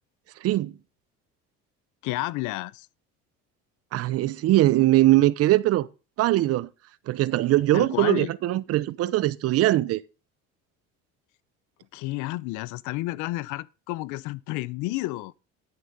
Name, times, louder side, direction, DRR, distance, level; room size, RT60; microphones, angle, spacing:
voice 1, 0.4-0.8 3.9-5.9 6.2-6.7 7.1-10.0, right 16 dB, 55° right, 0.7 m, -21 dB
voice 2, 2.0-2.9 7.7-8.3 11.9-15.3, left 19 dB, 85° left, 0.7 m, -31 dB
11.5 x 6.8 x 5.3 m
cardioid pair, 140°, 29 cm